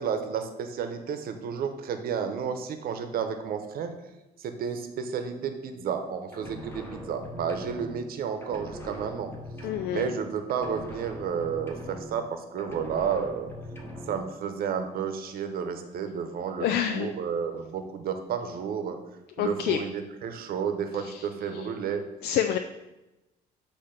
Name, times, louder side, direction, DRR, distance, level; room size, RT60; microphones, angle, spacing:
voice 1, 0.0-3.9 4.4-9.3 9.9-13.5 14.1-19.0 19.4-22.0, right 7 dB, 60° right, 7 dB, 0.9 m, -31 dB
sound 1, 6.3-8.1 8.4-10.2 10.5-12.3 12.6-14.3, equal, 15° left, 1.4 m, -41 dB
voice 2, 9.6-10.1 16.6-17.1 19.4-19.8 20.9-21.3 21.5-21.7 22.2-22.6, left 10 dB, 75° left, 6 dB, 0.4 m, -28 dB
8.6 x 2.9 x 5.8 m, 0.99 s
cardioid pair, 110°, 17 cm